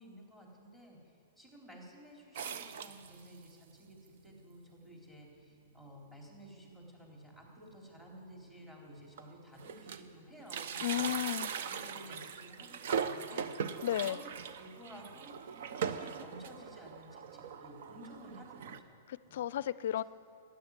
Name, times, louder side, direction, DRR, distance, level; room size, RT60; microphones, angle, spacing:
voice 1, 0.0-11.1 11.6-19.4 19.9-20.0, equal, 10° right, -2 dB, 3.9 m, -54 dB
sound 1, 2.4-3.5 4.1-4.2 4.4-4.5 5.3-5.4 5.8-6.0 6.3-6.4 7.7-7.8 8.5-8.6 8.9-10.1 10.4-18.8, right 7 dB, 65° right, 0.8 m, -40 dB
voice 2, 10.8-11.5 13.8-14.2 19.3-20.0, left 12 dB, 65° left, 18 dB, 0.4 m, -33 dB
13.0 x 9.7 x 9.6 m, 2.4 s
hypercardioid pair, 120°, 0 cm